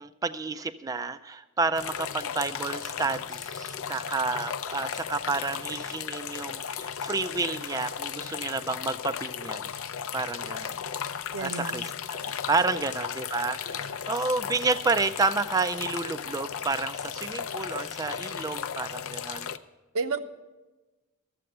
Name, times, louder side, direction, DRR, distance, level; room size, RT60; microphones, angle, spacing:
voice 1, 0.0-9.7 10.1-10.7 11.4-11.8 12.1-19.5, right 3 dB, 15° right, 10 dB, 0.3 m, -30 dB
sound 1, 1.7-19.6, left 8 dB, 70° left, 0.5 m, -35 dB
voice 2, 11.3-11.8 12.7-13.0 19.9-20.2, right 4 dB, 85° right, 8 dB, 0.8 m, -31 dB
13.0 x 7.7 x 7.8 m, 1.1 s
head